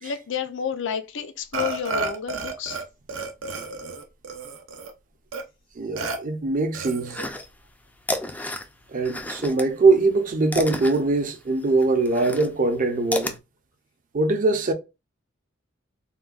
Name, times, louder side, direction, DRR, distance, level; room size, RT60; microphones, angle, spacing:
voice 1, 0.0-2.8, left 7 dB, 65° left, 0.5 m, -30 dB
Burping eructation, 1.5-2.8 3.1-4.9 5.3-5.4 6.0-6.2 6.7-7.3, right 3 dB, 80° right, 0.7 m, -31 dB
voice 2, 5.8-7.2 8.9-13.3 14.1-14.7, right 3 dB, 45° right, 0.5 m, -22 dB
sound 1, 7.1-7.7 8.0-9.7 10.0-13.4, left 1 dB, 10° left, 0.3 m, -31 dB
3.7 x 2.2 x 2.3 m
head